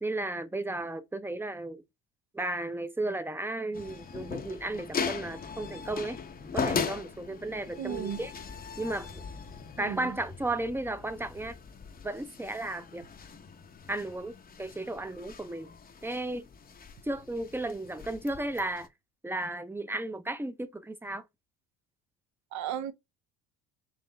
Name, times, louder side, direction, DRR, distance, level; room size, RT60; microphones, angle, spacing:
voice 1, 0.0-1.8 2.3-6.2 6.5-8.3 8.8-9.2 9.8-11.6 12.0-13.0 13.9-14.3 14.6-15.7 16.0-16.5 17.0-18.9 19.2-21.2, right 2 dB, 5° right, 0.6 m, -34 dB
sound 1, 3.7-18.9, left 5 dB, 25° left, 0.7 m, -39 dB
voice 2, 7.8-8.2 9.8-10.2 22.5-22.9, right 9 dB, 55° right, 0.6 m, -35 dB
4.1 x 3.0 x 3.8 m
supercardioid pair, 90°, 34 cm